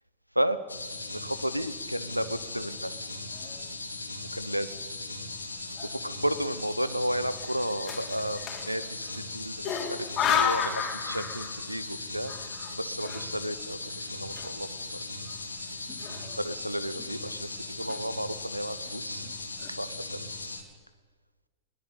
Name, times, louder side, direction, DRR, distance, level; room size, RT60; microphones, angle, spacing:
sound 1, 0.7-20.6, left 2 dB, 80° left, 2.6 m, -38 dB
voice 1, 1.1-3.0 4.3-4.8 5.6-8.4 8.6-12.3 12.7-15.0 16.4-19.3 19.7-20.6, equal, 90° right, 15 dB, 1.0 m, -33 dB
sound 2, 3.2-3.7 4.3-4.4 4.6-5.3 5.8-6.0 6.9-9.2 9.6-11.8 12.1-14.9 15.2-15.3 15.9-16.6 17.0-17.3 17.7-18.3 18.9-19.0 19.2-19.7, left 8 dB, 30° left, 3.2 m, -34 dB
21.5 x 18.0 x 8.5 m, 1.5 s
figure-of-eight pair, 90°, 0 cm